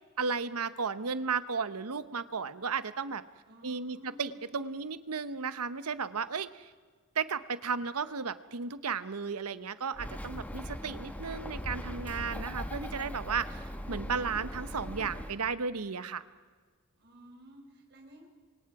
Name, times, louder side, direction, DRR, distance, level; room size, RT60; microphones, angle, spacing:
voice 1, 0.2-3.2 3.6-6.5 7.2-13.6 13.9-16.2, right 5 dB, 90° right, 13 dB, 0.9 m, -34 dB
voice 2, 3.4-4.4 17.0-18.3, right 1 dB, 50° right, 0 dB, 4.6 m, -53 dB
Bird, 9.9-15.4, equal, 5° left, 1.1 m, -40 dB
28.0 x 24.5 x 4.8 m, 1.5 s
head